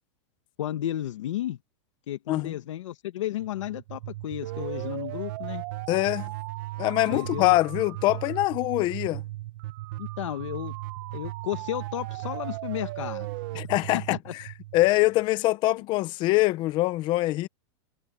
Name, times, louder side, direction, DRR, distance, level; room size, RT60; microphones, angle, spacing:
voice 1, 0.6-1.6 2.1-5.6 7.1-7.5 10.0-10.7 11.1-13.3 14.1-14.2, left 12 dB, 85° left, 1.4 m, -33 dB
sound 1, 3.4-15.2, right 17 dB, 45° right, 0.9 m, -36 dB
voice 2, 5.9-6.3 6.8-9.2 13.5-14.4 14.7-17.5, left 18 dB, 30° left, 0.9 m, -24 dB
supercardioid pair, 165°, 15 cm